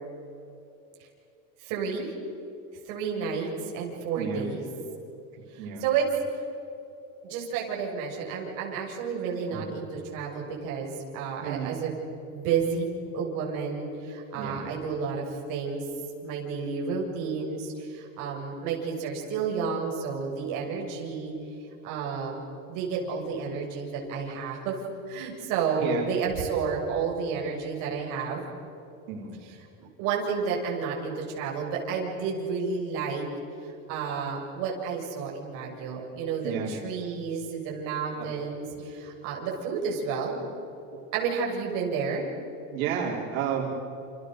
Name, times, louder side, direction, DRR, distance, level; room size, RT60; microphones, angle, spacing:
voice 1, 1.6-2.1 2.8-4.7 5.5-6.1 6.4-6.5 7.2-12.0 12.3-12.9 13.1-15.8 16.2-21.3 21.8-22.4 22.7-24.7 25.1-28.4 29.4-33.3 33.6-40.4 41.1-42.3, right 5 dB, 50° right, -2 dB, 7.5 m, -31 dB
voice 2, 4.2-4.5 5.3-5.8 9.5-9.7 11.4-11.8 14.3-14.6 25.7-26.0 29.1-29.4 36.4-36.8 38.2-38.3 40.9-41.0 42.7-43.7, right 7 dB, 90° right, -1 dB, 5.3 m, -32 dB
29.5 x 29.0 x 6.8 m, 2.7 s
cardioid pair, 175°, 41 cm